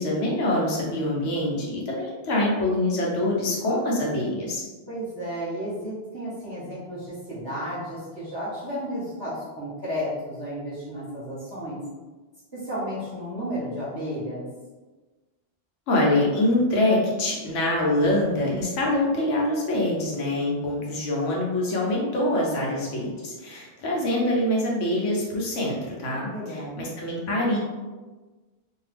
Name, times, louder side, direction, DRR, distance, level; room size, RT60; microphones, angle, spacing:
voice 1, 0.0-4.6 15.9-27.6, left 1 dB, 80° left, -3 dB, 1.1 m, -25 dB
voice 2, 4.9-11.8 12.5-14.4 26.3-26.8, equal, 20° right, -11 dB, 1.2 m, -33 dB
2.7 x 2.3 x 3.3 m, 1.3 s
omnidirectional pair, 1.2 m